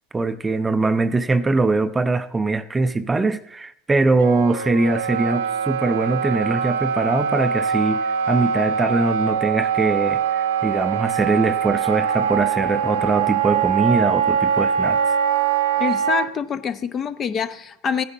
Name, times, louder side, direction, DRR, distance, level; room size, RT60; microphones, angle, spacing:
voice 1, 0.1-15.2, right 3 dB, 15° right, 0.5 m, -22 dB
Wind instrument woodwind instrument, 4.2-16.3, right 7 dB, 80° right, 0.8 m, -22 dB
voice 2, 15.8-18.0, left 6 dB, 35° left, 0.6 m, -25 dB
15.5 x 9.6 x 2.7 m
hypercardioid pair, 95°, 0 cm